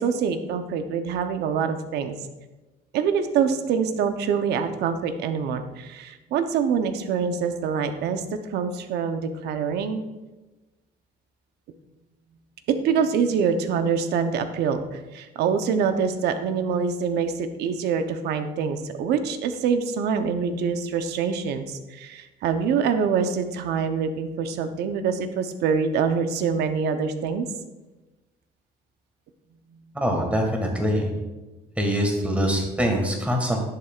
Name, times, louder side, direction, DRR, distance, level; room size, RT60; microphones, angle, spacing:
voice 1, 0.0-2.1 2.9-8.2 8.5-10.0 12.7-27.5, right 6 dB, 75° right, 8 dB, 0.8 m, -25 dB
voice 2, 30.0-31.1 31.8-33.6, equal, 10° right, 2 dB, 1.7 m, -24 dB
10.5 x 6.7 x 2.4 m, 1.1 s
cardioid pair, 110°, 17 cm